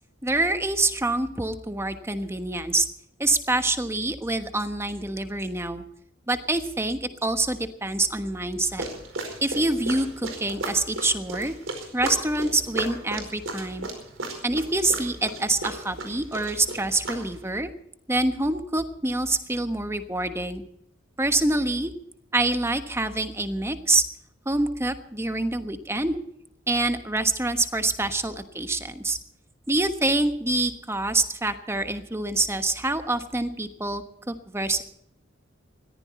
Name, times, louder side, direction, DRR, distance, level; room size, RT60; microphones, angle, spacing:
voice 1, 0.2-2.9 3.2-5.8 6.3-8.8 9.4-11.5 11.9-13.9 14.4-17.7 18.1-20.6 21.2-21.9 22.3-24.0 24.4-26.2 26.7-29.2 29.7-34.8, right 2 dB, 15° right, 9 dB, 1.2 m, -26 dB
sound 1, 8.7-17.4, right 2 dB, 75° right, 4.8 m, -35 dB
20.5 x 14.5 x 4.3 m, 0.73 s
head